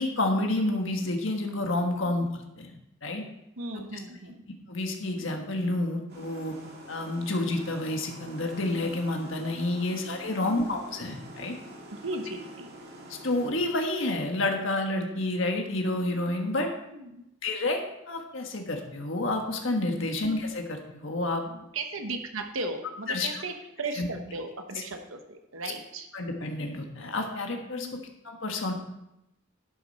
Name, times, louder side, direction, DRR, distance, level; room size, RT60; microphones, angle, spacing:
voice 1, 0.0-2.3 2.6-3.2 4.7-6.5 6.9-11.6 13.1-16.7 17.4-17.8 18.1-21.4 23.1-23.3 24.0-24.1 26.1-27.9 28.2-28.7, left 2 dB, 65° left, 3 dB, 1.5 m, -29 dB
voice 2, 3.6-4.4 12.0-12.7 16.9-17.2 21.4-26.1 27.7-28.1, right 2 dB, 75° right, 5 dB, 1.1 m, -37 dB
sound 1, 6.1-13.5, right 1 dB, 50° right, 2.3 m, -46 dB
11.0 x 8.2 x 4.2 m, 0.86 s
head